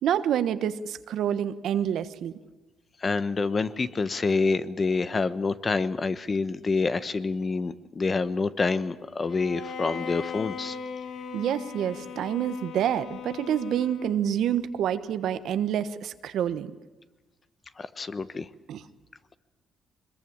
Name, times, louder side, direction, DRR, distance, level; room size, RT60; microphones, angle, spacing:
voice 1, 0.0-2.3 11.3-16.7 18.7-18.8, right 9 dB, 75° right, 11 dB, 1.3 m, -27 dB
voice 2, 3.0-10.8 17.8-18.5, left 4 dB, 35° left, 14 dB, 1.1 m, -27 dB
Bowed string instrument, 9.3-14.4, left 6 dB, 70° left, 1.6 m, -38 dB
23.0 x 21.5 x 8.9 m, 1.1 s
cardioid pair, 90°, 0 cm